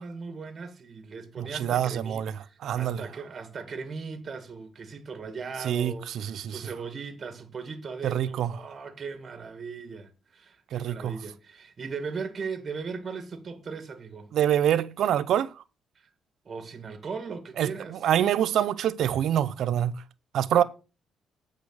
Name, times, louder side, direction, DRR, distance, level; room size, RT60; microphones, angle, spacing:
voice 1, 0.0-14.4 16.0-16.1 16.5-18.0 20.5-20.6, right 5 dB, 40° right, 1.8 m, -38 dB
voice 2, 1.4-2.3 2.6-3.0 5.6-6.6 8.0-8.5 10.7-11.2 14.3-15.5 17.6-19.9 20.3-20.6, right 10 dB, 75° right, 0.6 m, -25 dB
8.4 x 5.1 x 6.3 m
cardioid pair, 90°, 0 cm